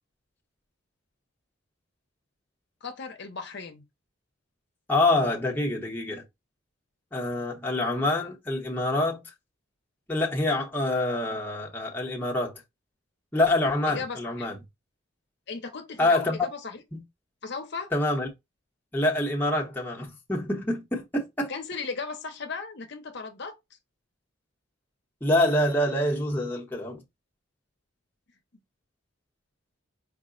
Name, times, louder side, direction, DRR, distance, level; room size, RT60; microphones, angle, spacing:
voice 1, 2.8-3.8 13.9-14.5 15.5-16.8 17.4-17.9 21.5-23.6, left 4 dB, 55° left, 0.7 m, -36 dB
voice 2, 4.9-6.2 7.1-9.2 10.1-12.6 13.3-14.6 16.0-16.5 16.9-17.0 17.9-18.3 18.9-21.5 25.2-27.0, left 1 dB, 10° left, 0.8 m, -26 dB
4.8 x 2.1 x 3.7 m
head